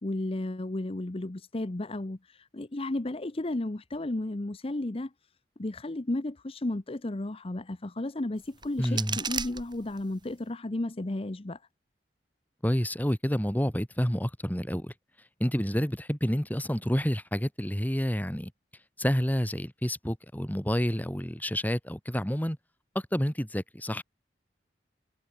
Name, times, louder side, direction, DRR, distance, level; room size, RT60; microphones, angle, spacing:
voice 1, 0.0-5.1 5.6-11.6, left 1 dB, 35° left, 0.8 m, -33 dB
sound 1, 8.4-10.4, right 6 dB, 25° right, 2.6 m, -36 dB
voice 2, 8.8-9.2 12.6-14.9 15.4-18.5 19.0-22.6 23.1-24.0, equal, 10° left, 3.0 m, -29 dB
head